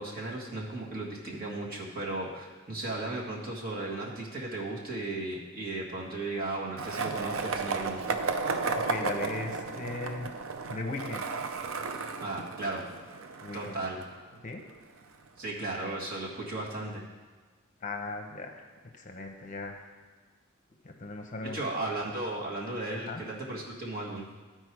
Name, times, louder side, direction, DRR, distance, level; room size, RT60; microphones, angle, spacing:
voice 1, 0.0-8.0 12.2-12.8 13.5-14.0 15.4-17.0 21.5-24.3, right 2 dB, 45° right, -3 dB, 1.7 m, -35 dB
Skateboard, 6.8-14.7, right 4 dB, 80° right, 0.6 m, -34 dB
voice 2, 8.7-10.3 10.7-11.3 13.4-13.8 14.4-14.6 17.8-19.9 20.8-21.6 23.0-23.2, left 2 dB, 40° left, 3 dB, 0.8 m, -38 dB
13.0 x 4.5 x 4.7 m, 1.4 s
head